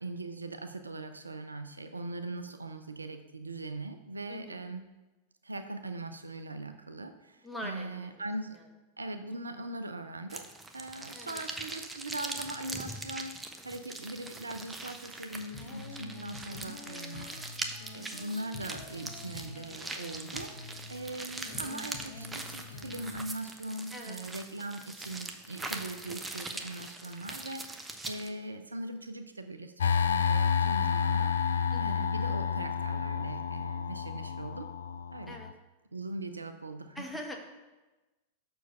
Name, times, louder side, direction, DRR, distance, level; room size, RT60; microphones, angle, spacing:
voice 1, 0.0-4.9 5.4-8.6 9.0-10.5 10.7-17.3 17.9-20.5 20.9-31.3 31.8-34.7 35.1-35.4 35.9-37.0, right 2 dB, 80° right, 8 dB, 0.5 m, -40 dB
voice 2, 4.3-4.7 7.4-8.3 8.5-8.7 9.5-9.6 11.1-11.4 23.9-24.2 31.7-32.1 35.3-35.5 36.9-37.4, left 1 dB, 5° left, 1 dB, 1.3 m, -43 dB
sound 1, 10.3-28.3, right 2 dB, 10° right, 0.7 m, -42 dB
Female singing, 15.5-23.2, left 3 dB, 50° left, 0.9 m, -46 dB
sound 2, 29.8-35.5, left 7 dB, 65° left, 0.3 m, -30 dB
6.3 x 4.5 x 6.5 m, 1.1 s
figure-of-eight pair, 90°, 0 cm